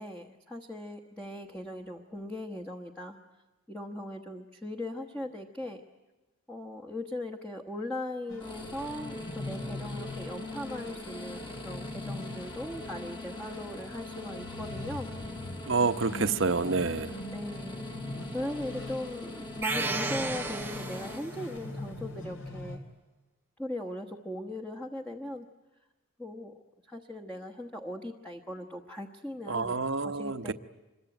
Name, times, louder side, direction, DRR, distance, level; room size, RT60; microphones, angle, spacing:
voice 1, 0.0-3.2 3.7-5.8 6.5-15.1 17.3-18.0 18.3-22.8 23.6-25.5 26.2-26.5 26.9-30.5, left 1 dB, 5° left, 1 dB, 1.2 m, -39 dB
sound 1, 8.3-22.8, left 2 dB, 65° left, 3.7 m, -42 dB
sound 2, 8.4-21.2, left 2 dB, 20° left, 1.9 m, -43 dB
voice 2, 15.7-17.1 29.5-30.5, right 4 dB, 55° right, 10 dB, 0.9 m, -28 dB
sound 3, 19.6-21.5, right 3 dB, 10° right, 1.0 m, -33 dB
26.0 x 22.5 x 9.2 m, 1.1 s
head